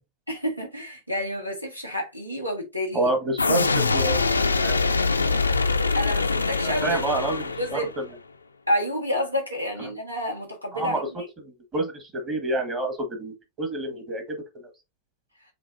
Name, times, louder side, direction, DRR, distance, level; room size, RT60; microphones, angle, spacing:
voice 1, 0.3-3.1 5.9-7.0 7.6-7.9 8.7-11.3, equal, 90° right, 1.5 m, -29 dB
voice 2, 2.9-4.2 4.6-4.9 6.6-8.0 9.8-9.9 10.7-11.1 11.4-14.7, right 2 dB, 25° right, 1.5 m, -28 dB
sound 1, 3.4-8.0, left 4 dB, 80° left, 0.4 m, -23 dB
7.6 x 2.6 x 2.5 m
figure-of-eight pair, 90°, 0 cm